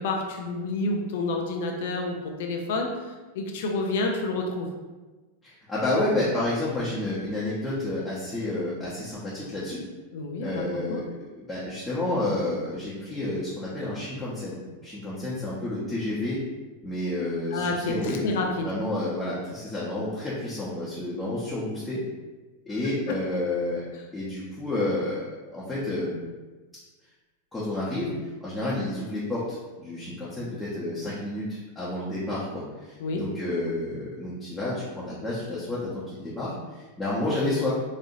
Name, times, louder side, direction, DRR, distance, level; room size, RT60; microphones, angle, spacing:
voice 1, 0.0-4.7 10.1-10.6 10.9-11.0 17.5-18.7 33.0-33.2, left 2 dB, 55° left, 2 dB, 0.4 m, -29 dB
voice 2, 5.4-9.8 10.4-11.0 11.4-16.4 16.8-18.3 18.6-22.0 22.7-23.8 24.1-26.2 27.5-28.1 28.4-37.7, left 2 dB, 10° left, -9 dB, 0.8 m, -30 dB
4.1 x 2.6 x 2.6 m, 1.2 s
figure-of-eight pair, 90°, 0 cm